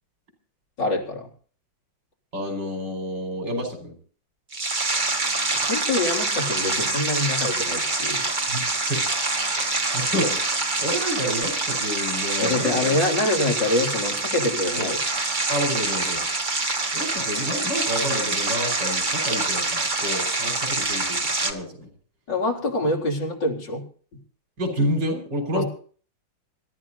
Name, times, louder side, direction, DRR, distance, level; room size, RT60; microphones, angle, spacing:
voice 1, 0.8-1.3 5.5-8.2 12.4-15.0 22.3-23.8 25.5-25.6, left 2 dB, 65° left, 0 dB, 4.3 m, -25 dB
voice 2, 2.3-4.0 8.5-9.1 9.5-13.0 14.8-14.9 15.5-16.2 16.9-21.9 24.6-25.6, equal, 65° right, 5 dB, 5.4 m, -29 dB
sound 1, 4.5-21.5, right 3 dB, 25° right, 1.6 m, -26 dB
26.0 x 14.0 x 2.7 m, 0.43 s
omnidirectional pair, 2.0 m